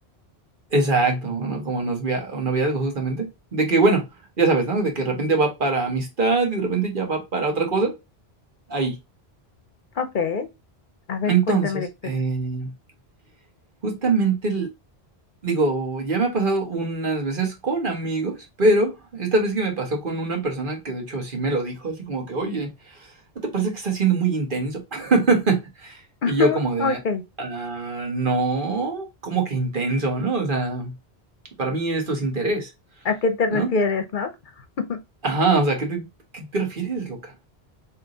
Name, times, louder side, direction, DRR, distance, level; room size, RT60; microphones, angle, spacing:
voice 1, 0.7-4.0 4.4-7.9 8.7-9.0 11.2-12.7 13.8-14.7 15.4-23.1 23.4-27.0 27.4-30.9 31.6-32.7 33.5-33.7 35.2-36.1 36.3-37.5, right 3 dB, 55° right, 1.4 m, -23 dB
voice 2, 10.0-10.5 11.1-11.9 26.2-27.2 33.0-34.3 34.8-35.0, left 4 dB, 55° left, 0.7 m, -24 dB
3.5 x 2.8 x 3.7 m
omnidirectional pair, 1.1 m